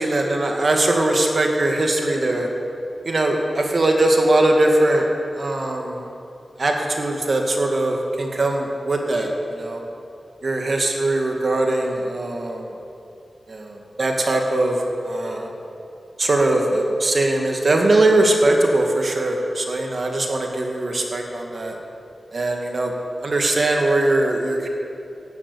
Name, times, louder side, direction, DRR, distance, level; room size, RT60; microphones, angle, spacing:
voice 1, 0.0-2.5 3.0-5.1 5.3-6.1 6.6-9.8 10.4-12.7 13.5-15.5 16.2-21.8 22.3-22.9 23.2-24.7, right 2 dB, 55° right, 2 dB, 2.2 m, -21 dB
13.0 x 11.0 x 8.6 m, 2.6 s
cardioid pair, 60°, 0 cm